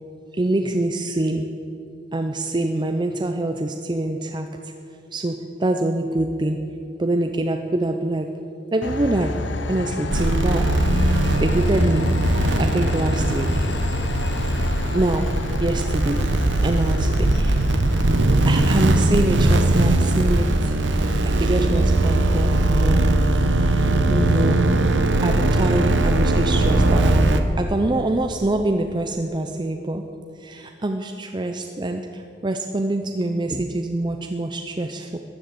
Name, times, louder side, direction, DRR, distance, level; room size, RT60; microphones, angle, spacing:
voice 1, 0.3-1.5 2.1-4.7 5.1-6.6 7.0-8.3 8.7-9.3 9.7-10.7 11.0-12.1 12.6-13.7 14.9-15.3 15.6-16.3 16.6-17.6 18.5-20.7 21.2-23.0 23.6-24.6 25.2-30.0 30.4-35.2, right 2 dB, 25° right, 5 dB, 0.6 m, -25 dB
Train, 8.8-24.0, left 2 dB, 75° left, 0.8 m, -30 dB
sound 1, 10.1-27.4, right 2 dB, 75° right, 0.9 m, -20 dB
15.0 x 10.5 x 7.7 m, 2.7 s
head